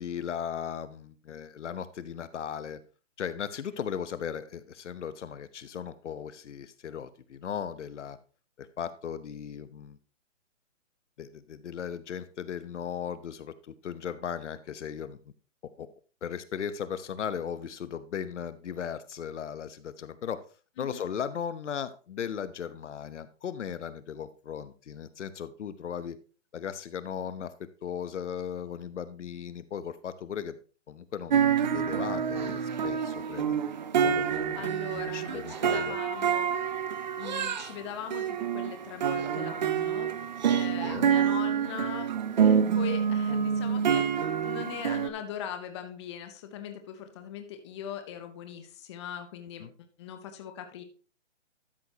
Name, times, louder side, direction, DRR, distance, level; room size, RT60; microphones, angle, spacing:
voice 1, 0.0-2.8 3.2-8.2 8.6-10.0 11.2-15.2 15.8-15.9 16.2-20.4 20.8-26.2 26.5-30.6 30.9-33.6 34.0-36.0 40.8-41.1 49.6-49.7, left 8 dB, 70° left, 14 dB, 0.9 m, -37 dB
sound 1, 31.3-37.7 38.1-45.1, right 8 dB, 35° right, 0.6 m, -27 dB
voice 2, 34.5-36.5 37.2-42.1 42.4-49.7 50.0-50.8, left 9 dB, 25° left, 7 dB, 0.7 m, -40 dB
12.5 x 6.4 x 2.9 m, 0.37 s
hypercardioid pair, 155°, 37 cm